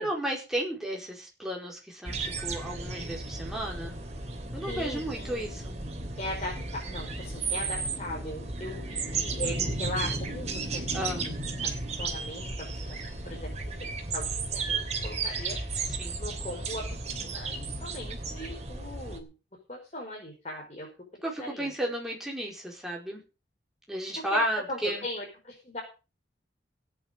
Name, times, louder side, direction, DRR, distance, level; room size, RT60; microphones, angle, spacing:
voice 1, 0.0-3.9 4.5-5.7 10.9-11.3 16.0-16.2 21.2-23.2 23.9-25.0, right 1 dB, 5° right, -1 dB, 4.7 m, -33 dB
sound 1, 2.0-19.2, right 3 dB, 40° right, 3.1 m, -34 dB
voice 2, 4.7-5.6 6.2-11.3 11.6-13.0 13.3-15.6 16.2-19.3 19.7-20.9 21.1-21.7 24.3-24.4 24.7-25.8, left 1 dB, 40° left, -2 dB, 5.3 m, -39 dB
17.5 x 9.4 x 5.3 m, 0.32 s
head